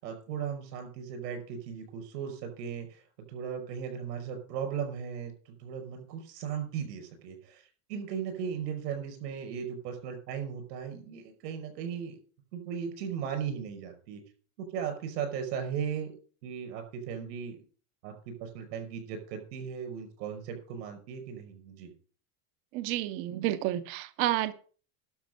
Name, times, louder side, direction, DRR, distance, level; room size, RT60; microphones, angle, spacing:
voice 1, 0.0-3.0 3.3-7.6 7.9-12.2 12.5-14.2 14.6-16.1 16.4-17.6 18.0-21.9, right 7 dB, 90° right, 5 dB, 5.7 m, -37 dB
voice 2, 22.7-24.5, right 14 dB, 30° right, 11 dB, 0.5 m, -30 dB
12.0 x 5.9 x 7.7 m, 0.41 s
cardioid pair, 180°, 47 cm